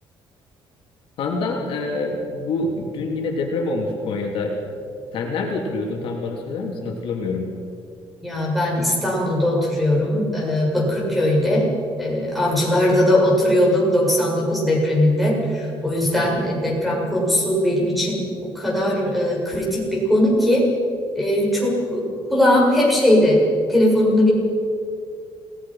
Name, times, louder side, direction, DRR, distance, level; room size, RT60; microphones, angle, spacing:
voice 1, 1.2-4.6 5.1-7.5, left 3 dB, 70° left, 0 dB, 3.4 m, -26 dB
voice 2, 8.2-11.7 12.0-20.7 21.1-23.4 23.7-24.3, left 1 dB, ahead, -3 dB, 7.3 m, -19 dB
27.5 x 18.5 x 5.9 m, 2.4 s
cardioid pair, 140°, 9 cm